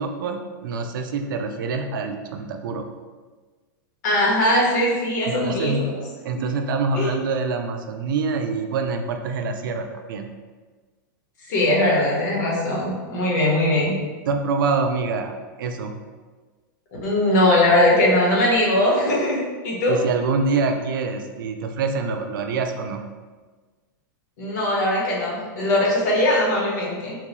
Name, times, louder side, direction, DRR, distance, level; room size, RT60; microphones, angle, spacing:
voice 1, 0.0-2.9 5.3-5.8 6.2-10.3 14.3-15.9 19.9-23.0, right 4 dB, 75° right, 5 dB, 0.4 m, -26 dB
voice 2, 4.0-6.0 6.9-7.1 11.4-13.9 17.0-20.0 24.4-27.2, left 1 dB, 60° left, -4 dB, 1.2 m, -20 dB
3.7 x 2.3 x 2.9 m, 1.4 s
supercardioid pair, 150°, 11 cm